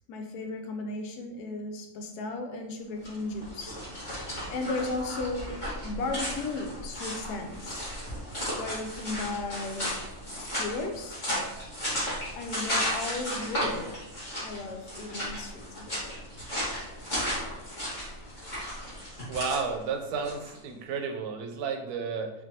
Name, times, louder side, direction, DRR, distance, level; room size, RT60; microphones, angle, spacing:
voice 1, 0.1-3.8 4.5-7.8 8.5-9.9 10.3-11.2 12.4-13.9 14.4-16.2, left 3 dB, 85° left, 4 dB, 1.1 m, -35 dB
sound 1, 2.9-20.6, equal, 30° left, 1.5 m, -35 dB
voice 2, 19.3-22.3, right 5 dB, 80° right, 4 dB, 1.1 m, -32 dB
4.4 x 2.5 x 2.7 m, 0.91 s
omnidirectional pair, 1.6 m